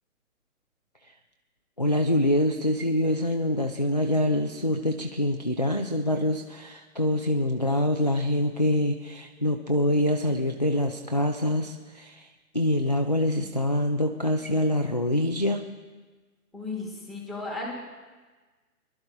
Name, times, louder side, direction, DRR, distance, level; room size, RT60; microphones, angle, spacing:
voice 1, 1.8-12.3 12.5-15.7, left 1 dB, 30° left, 4 dB, 0.4 m, -25 dB
voice 2, 16.5-17.7, left 3 dB, ahead, -4 dB, 0.9 m, -34 dB
27.5 x 12.0 x 2.2 m, 1.3 s
figure-of-eight pair, 145°, 45 cm